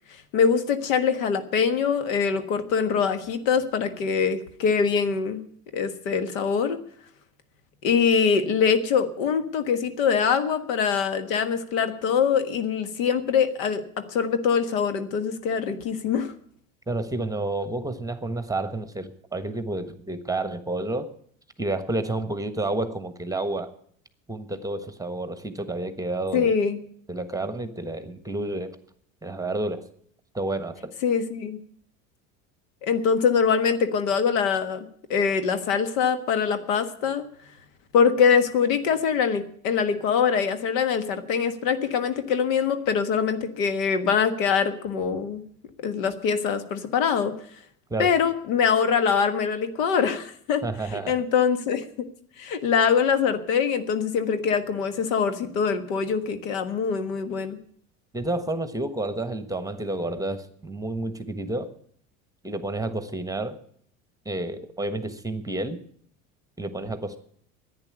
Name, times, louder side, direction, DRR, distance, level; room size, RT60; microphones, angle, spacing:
voice 1, 0.3-5.4 5.7-6.8 7.8-13.8 14.1-16.3 26.3-26.8 31.0-31.6 32.8-37.2 37.9-45.4 45.8-47.3 48.0-50.6 50.9-52.1 52.4-57.6, left 6 dB, 75° left, 9 dB, 1.6 m, -23 dB
voice 2, 16.9-21.1 21.6-23.7 24.3-26.5 27.1-28.7 29.2-29.9 30.3-30.9 47.9-48.1 50.6-51.2 58.1-61.7 62.4-63.6 64.2-65.8 66.6-67.2, right 2 dB, 10° right, 10 dB, 1.3 m, -30 dB
10.5 x 9.6 x 9.8 m, 0.63 s
hypercardioid pair, 80°, 41 cm